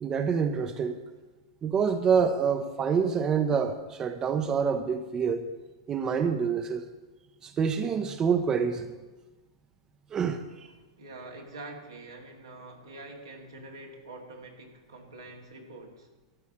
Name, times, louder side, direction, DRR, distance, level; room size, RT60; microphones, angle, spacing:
voice 1, 0.0-1.0 1.6-5.5 5.9-6.9 7.4-8.9 10.1-10.4, right 6 dB, 25° right, 8 dB, 0.7 m, -26 dB
voice 2, 10.6-16.1, right 2 dB, 80° right, 0 dB, 2.2 m, -45 dB
13.5 x 4.7 x 8.6 m, 1.2 s
figure-of-eight pair, 100°, 2 cm